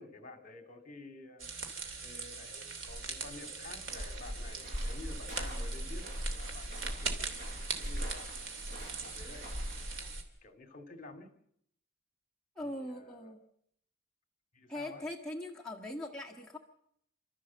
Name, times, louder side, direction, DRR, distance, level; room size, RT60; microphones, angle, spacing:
voice 1, 0.0-1.5 2.0-8.4 9.0-9.5 10.4-11.3 12.6-13.3 14.5-15.0, left 2 dB, 40° left, 7 dB, 2.4 m, -51 dB
sound 1, 1.4-10.2, right 2 dB, 70° right, 2.8 m, -39 dB
sound 2, 3.8-10.0, right 1 dB, 40° right, 6.7 m, -51 dB
voice 2, 12.5-13.4 14.7-16.6, left 1 dB, 5° left, -2 dB, 1.6 m, -41 dB
28.5 x 13.0 x 7.4 m, 0.73 s
head